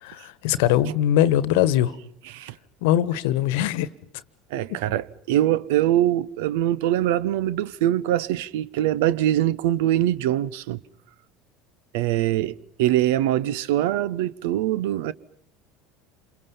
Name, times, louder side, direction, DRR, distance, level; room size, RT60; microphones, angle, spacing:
voice 1, 0.0-2.0 2.8-3.9, left 12 dB, 65° left, 1.3 m, -21 dB
voice 2, 4.5-10.8 11.9-15.1, right 13 dB, 65° right, 1.0 m, -23 dB
29.0 x 28.0 x 5.6 m
figure-of-eight pair, 70°, 0 cm